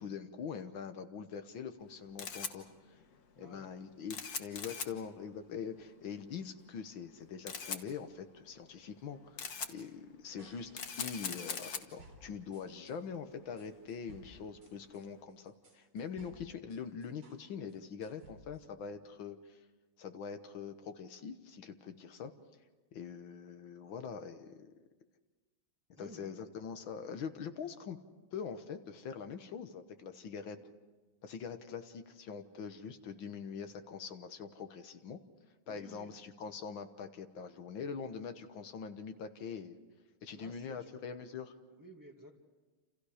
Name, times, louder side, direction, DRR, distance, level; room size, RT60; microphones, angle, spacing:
voice 1, 0.0-3.0 3.4-10.7 11.0-19.6 20.0-22.3 22.9-24.7 26.0-28.0 28.3-30.6 31.2-35.2 35.7-39.8 40.2-41.6, left 6 dB, 75° left, 8 dB, 1.9 m, -43 dB
Camera, 1.8-15.2, left 6 dB, 50° left, 1.7 m, -45 dB
voice 2, 3.4-3.7 26.0-26.3 35.7-36.1 40.3-41.1 41.7-42.3, equal, 10° right, 2 dB, 1.9 m, -54 dB
sound 1, 10.4-13.0 13.6-17.4 17.7-18.7, right 1 dB, 85° right, 4.3 m, -59 dB
29.0 x 28.5 x 5.0 m, 1.3 s
omnidirectional pair, 2.2 m